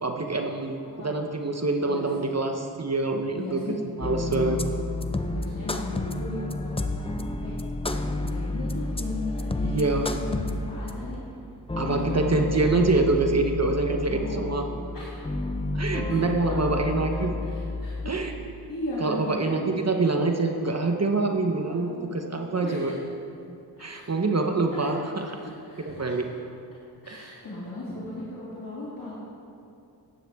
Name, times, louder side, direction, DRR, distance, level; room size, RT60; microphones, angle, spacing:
voice 1, 0.0-3.6 4.0-4.6 9.6-10.1 11.8-14.6 15.7-17.3 18.1-18.3 19.0-22.9 23.8-25.0 25.8-26.2 27.1-27.4, right 3 dB, 40° right, 3 dB, 0.9 m, -25 dB
voice 2, 1.8-2.3 3.3-3.8 4.4-4.7 5.3-7.1 7.4-7.5 7.8-11.2 11.9-12.9 14.1-14.6 14.9-15.2 16.1-16.2 16.6-16.7 17.1-18.2 18.7-19.5 21.5-22.0 22.5-23.0 23.8-24.1 24.6-26.2 27.0-29.1, left 1 dB, 50° left, -9 dB, 2.7 m, -37 dB
sound 1, 4.0-18.1, left 2 dB, 15° left, 0.5 m, -31 dB
13.5 x 10.0 x 3.6 m, 2.6 s
wide cardioid pair, 75°, 41 cm